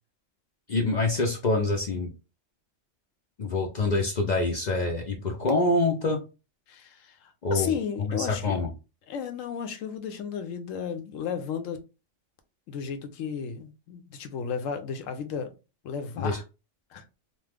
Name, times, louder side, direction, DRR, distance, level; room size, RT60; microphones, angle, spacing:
voice 1, 0.7-2.1 3.4-6.2 7.4-8.7 16.2-16.4, left 2 dB, 60° left, 0.4 m, -26 dB
voice 2, 6.7-8.6 9.1-11.8 12.7-15.5 15.8-16.4 16.9-17.0, left 7 dB, 80° left, 0.9 m, -33 dB
2.9 x 2.0 x 3.3 m
omnidirectional pair, 1.3 m